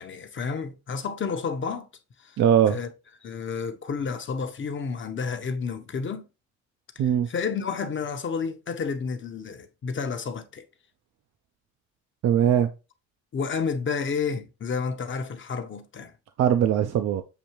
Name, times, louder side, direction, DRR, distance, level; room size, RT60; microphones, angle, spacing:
voice 1, 0.0-1.9 2.2-2.4 2.7-2.9 3.2-6.3 7.3-10.7 13.3-16.1, left 5 dB, 40° left, 0.8 m, -30 dB
voice 2, 2.4-2.8 7.0-7.3 12.2-12.7 16.4-17.2, right 9 dB, 60° right, 0.5 m, -20 dB
6.9 x 2.6 x 2.9 m
cardioid pair, 90°, 30 cm